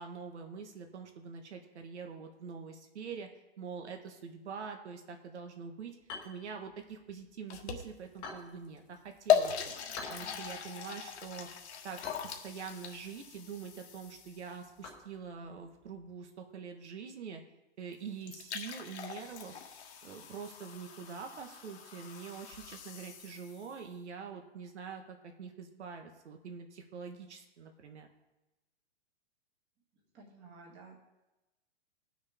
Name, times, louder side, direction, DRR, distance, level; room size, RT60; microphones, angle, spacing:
voice 1, 0.0-3.3 3.6-6.0 6.2-9.7 10.1-11.5 11.8-17.4 17.8-19.6 20.0-28.1, right 6 dB, 80° right, 4 dB, 1.4 m, -45 dB
sound 1, 6.0-16.1, left 4 dB, 15° left, 1.1 m, -52 dB
sound 2, 7.5-8.2 8.8-8.9 9.3-14.5 17.9-18.0 18.2-23.8, left 9 dB, 75° left, 1.5 m, -37 dB
voice 2, 29.9-31.0, right 3 dB, 20° right, -2 dB, 1.7 m, -54 dB
18.5 x 6.5 x 3.6 m, 1.0 s
hypercardioid pair, 175°, 34 cm